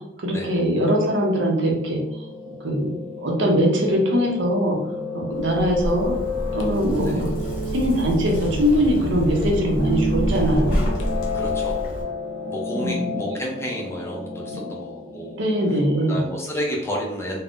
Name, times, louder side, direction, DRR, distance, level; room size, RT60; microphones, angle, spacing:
voice 1, 0.2-4.8 5.1-6.1 6.5-7.3 7.7-10.8 12.7-13.2 14.5-14.7 15.4-16.2, equal, 80° right, 0 dB, 0.7 m, -22 dB
Piano, 1.6-16.0, left 3 dB, 90° left, 0.5 m, -31 dB
Zipper (clothing), 5.4-12.0, equal, 45° left, 1.0 m, -28 dB
voice 2, 11.3-11.8 12.5-15.4 16.1-17.4, equal, 15° left, -1 dB, 0.5 m, -31 dB
2.5 x 2.1 x 3.5 m, 0.91 s
head